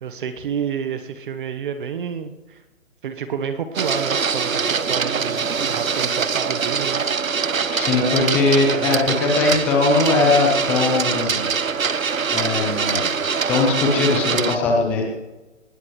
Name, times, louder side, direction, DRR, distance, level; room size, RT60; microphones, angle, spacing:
voice 1, 0.0-2.6 3.0-7.4 7.9-8.3 8.7-9.2, right 7 dB, 40° right, 9 dB, 1.1 m, -29 dB
Printer, 3.7-14.6, right 6 dB, 90° right, 0.9 m, -23 dB
voice 2, 7.7-11.5 12.3-13.0 13.5-15.1, left 3 dB, 5° left, 1 dB, 0.5 m, -20 dB
19.5 x 19.5 x 3.2 m, 1.1 s
figure-of-eight pair, 140°, 39 cm